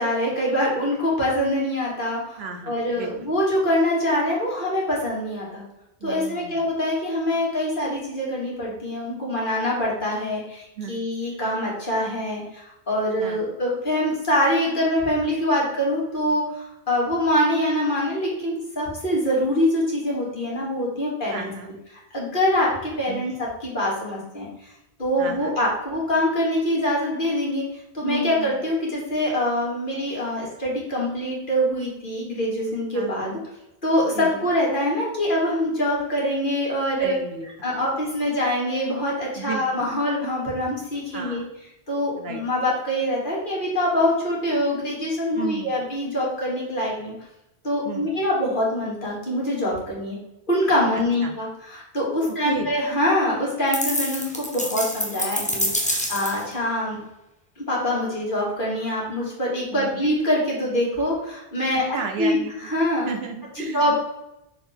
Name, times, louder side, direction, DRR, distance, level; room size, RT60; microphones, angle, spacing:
voice 1, 0.0-5.6 6.0-21.5 22.1-24.7 25.0-33.4 33.8-37.1 37.6-41.4 41.9-47.1 47.6-50.2 50.5-57.0 57.6-61.8 62.2-62.4 62.6-63.1 63.7-64.0, left 1 dB, 55° left, -4 dB, 2.5 m, -24 dB
voice 2, 2.4-3.3 6.0-6.7 10.8-11.0 13.2-13.5 21.3-21.7 23.1-23.3 25.2-25.6 28.0-28.6 32.9-33.4 34.1-34.5 37.0-37.8 39.3-39.8 41.1-41.5 42.2-42.4 45.3-45.7 47.8-48.1 51.2-51.3 52.5-52.7 59.7-60.0 61.7-62.7 63.0-64.0, right 5 dB, 75° right, 4 dB, 1.2 m, -34 dB
sound 1, 53.7-56.5, left 1 dB, 10° left, 0.8 m, -26 dB
6.6 x 5.1 x 3.6 m, 0.90 s
omnidirectional pair, 1.1 m